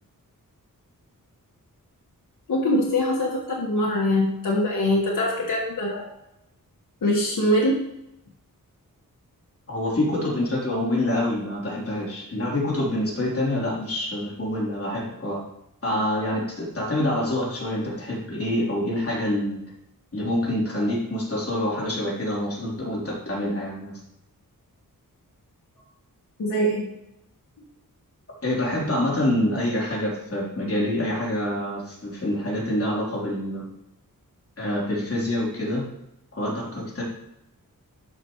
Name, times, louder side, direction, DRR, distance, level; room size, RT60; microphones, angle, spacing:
voice 1, 2.5-6.1 7.0-7.8 26.4-26.9, left 1 dB, 70° left, -3 dB, 1.6 m, -23 dB
voice 2, 9.7-15.5 15.8-19.6 20.1-24.0 28.4-33.7 34.6-35.9 36.3-37.0, left 1 dB, 40° left, -5 dB, 3.4 m, -26 dB
12.0 x 5.8 x 3.1 m, 0.85 s
wide cardioid pair, 95°, 34 cm